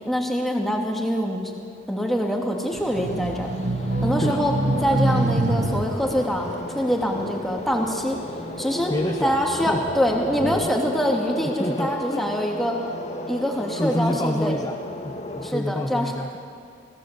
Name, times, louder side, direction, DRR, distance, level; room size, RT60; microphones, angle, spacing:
voice 1, 0.1-1.4 1.9-3.5 4.0-4.5 4.8-8.2 8.6-8.9 9.2-12.7 13.3-14.6 15.4-16.1, equal, ahead, 0 dB, 2.8 m, -24 dB
sound 1, 2.0-15.5, left 1 dB, 40° left, 2.0 m, -35 dB
sound 2, 2.7-8.3 8.8-10.7, right 2 dB, 60° right, 1.2 m, -27 dB
sound 3, 3.9-10.4, left 2 dB, 80° left, 4.5 m, -40 dB
voice 2, 8.9-9.4 9.7-9.8 10.4-10.6 11.6-12.3 13.8-14.8 15.0-16.4, left 1 dB, 20° left, 5 dB, 0.8 m, -27 dB
26.0 x 19.0 x 8.5 m, 2.4 s
head